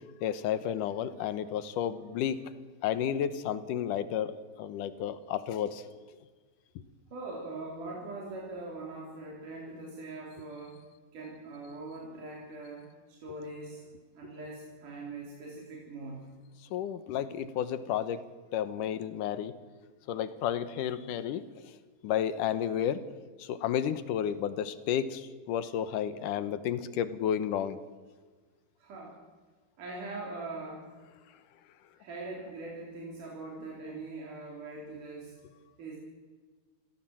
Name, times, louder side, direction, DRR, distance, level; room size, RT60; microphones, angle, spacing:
voice 1, 0.2-2.4 2.8-5.9 16.7-18.2 18.5-19.5 20.1-21.4 22.0-23.0 23.4-27.8, left 9 dB, 85° left, 13 dB, 2.6 m, -32 dB
voice 2, 7.1-10.8 11.1-13.8 14.1-16.2 28.8-29.2 29.8-30.9 32.0-35.3 35.8-36.0, right 2 dB, 80° right, -2 dB, 5.1 m, -42 dB
26.0 x 16.5 x 7.7 m, 1.4 s
omnidirectional pair, 3.6 m